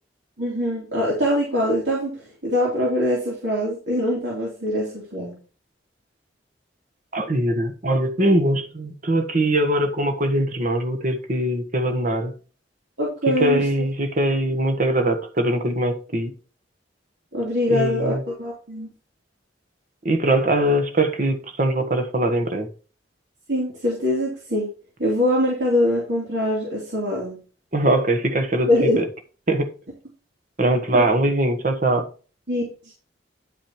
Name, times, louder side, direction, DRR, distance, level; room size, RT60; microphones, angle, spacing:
voice 1, 0.4-5.4 13.0-13.9 17.3-18.9 23.5-24.7 25.0-27.4 28.7-29.0 30.9-31.0 32.5-32.7, left 1 dB, 65° right, 2.9 m, -23 dB
voice 2, 7.1-12.3 13.3-16.3 17.7-18.2 20.0-22.7 27.7-29.0 29.5-29.7 30.6-32.1, right 1 dB, 45° right, 1.5 m, -22 dB
10.5 x 5.0 x 4.4 m
head